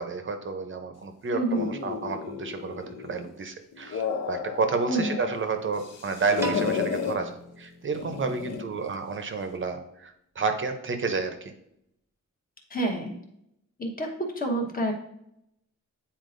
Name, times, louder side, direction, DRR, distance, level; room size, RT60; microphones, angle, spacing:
voice 1, 0.0-11.5, right 4 dB, 40° right, 7 dB, 0.7 m, -31 dB
voice 2, 1.3-1.7 4.9-5.1 12.7-13.2 13.8-14.1 14.4-14.9, right 1 dB, 30° left, 1 dB, 1.1 m, -28 dB
sound 1, 1.5-3.3 3.7-5.4 5.7-7.2 7.9-8.7, left 6 dB, 55° left, 0.7 m, -32 dB
Piano, 6.4-8.7, right 2 dB, 10° right, 0.8 m, -38 dB
9.2 x 4.3 x 2.6 m, 0.76 s
wide cardioid pair, 160°, 31 cm